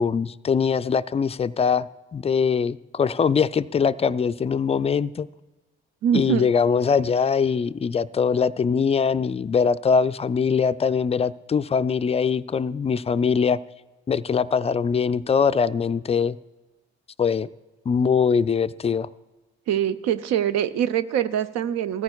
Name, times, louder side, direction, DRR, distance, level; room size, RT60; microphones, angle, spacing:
voice 1, 0.0-5.3 6.1-13.6 14.1-16.4 17.2-17.5 17.9-19.1, left 6 dB, 20° left, 14 dB, 0.4 m, -22 dB
voice 2, 6.0-6.5 19.7-22.0, right 9 dB, 65° right, 14 dB, 0.6 m, -23 dB
17.0 x 14.5 x 2.3 m, 1.2 s
hypercardioid pair, 45°, 29 cm